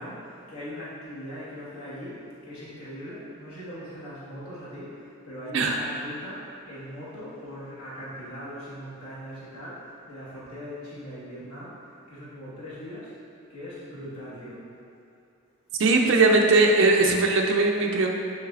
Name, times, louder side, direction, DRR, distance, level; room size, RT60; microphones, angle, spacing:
voice 1, 0.0-13.1 13.5-14.6, equal, 85° left, -10 dB, 1.4 m, -40 dB
voice 2, 15.8-18.1, right 3 dB, 60° right, 1 dB, 0.4 m, -20 dB
6.3 x 3.3 x 2.4 m, 2.6 s
head